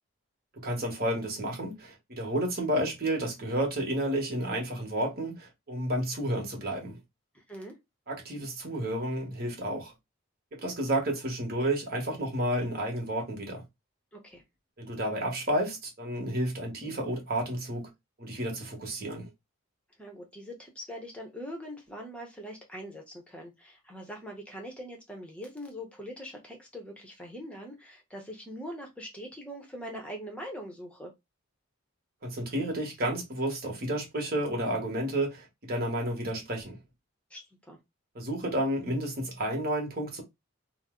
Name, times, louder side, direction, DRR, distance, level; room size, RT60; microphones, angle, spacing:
voice 1, 0.5-7.0 8.1-9.9 10.5-13.6 14.8-17.9 18.2-19.3 32.2-36.8 38.1-40.2, right 1 dB, 45° right, 1.1 m, -31 dB
voice 2, 7.3-7.8 14.1-14.4 20.0-31.1 37.3-37.8, equal, 5° left, 0.7 m, -42 dB
2.6 x 2.0 x 3.6 m
head